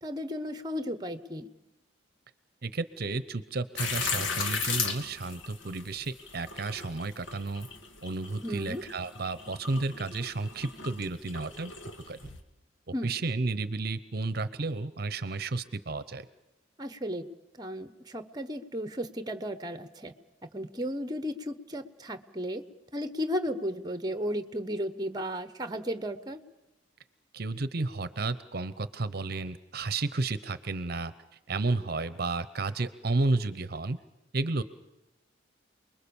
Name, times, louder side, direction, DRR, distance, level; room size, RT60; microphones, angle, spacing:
voice 1, 0.0-1.5 8.4-8.8 12.9-13.1 16.8-17.3 17.6-20.1 20.5-22.6 22.9-26.4, equal, 20° right, 11 dB, 1.1 m, -34 dB
voice 2, 2.6-7.7 8.0-11.7 12.1-12.2 13.0-16.3 27.3-34.0 34.3-34.6, right 3 dB, 55° right, 13 dB, 0.8 m, -32 dB
sound 1, 3.8-12.4, left 5 dB, 80° left, 1.9 m, -36 dB
29.0 x 21.5 x 7.1 m, 0.95 s
head